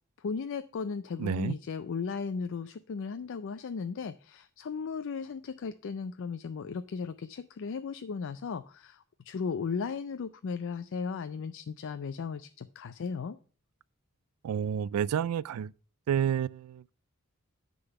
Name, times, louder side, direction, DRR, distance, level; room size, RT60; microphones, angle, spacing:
voice 1, 0.2-13.4, left 5 dB, 60° left, 0.4 m, -36 dB
voice 2, 1.2-1.5 14.4-15.7 16.1-16.9, right 8 dB, 85° right, 0.3 m, -30 dB
9.8 x 3.9 x 6.8 m
head